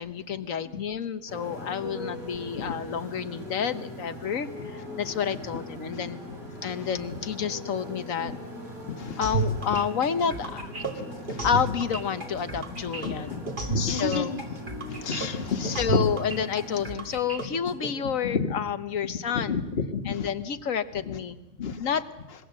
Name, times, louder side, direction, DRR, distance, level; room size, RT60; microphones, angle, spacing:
voice 1, 0.0-6.2 6.6-8.4 9.2-10.7 11.4-13.6 13.9-14.4 15.5-19.6 20.0-21.4 21.8-22.0, left 7 dB, 70° left, 12 dB, 1.4 m, -30 dB
Motorcycle, 1.3-16.9, left 1 dB, 90° right, 7.6 m, -41 dB
voice 2, 8.9-9.2 10.9-11.6 13.0-13.4 13.7-14.4 14.9-16.0 18.2-18.5 19.3-20.3 21.1-21.2 21.6-21.8, left 5 dB, 45° left, 7 dB, 1.6 m, -30 dB
sound 1, 9.2-17.9, right 3 dB, 35° right, 2.7 m, -32 dB
25.5 x 21.5 x 7.6 m, 0.95 s
omnidirectional pair, 1.5 m